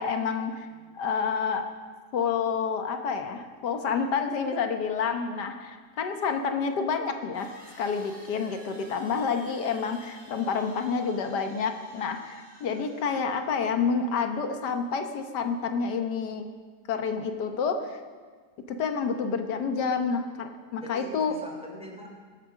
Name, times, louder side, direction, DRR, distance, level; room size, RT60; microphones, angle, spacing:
voice 1, 0.0-0.7 0.9-1.7 2.1-7.5 7.8-16.4 16.9-18.0 18.8-21.3, left 5 dB, 90° left, 6 dB, 1.6 m, -29 dB
sound 1, 7.3-13.5, equal, 25° right, 3.4 m, -53 dB
voice 2, 20.8-22.2, equal, 5° right, -1 dB, 2.9 m, -43 dB
22.0 x 7.9 x 6.2 m, 1.5 s
omnidirectional pair, 1.7 m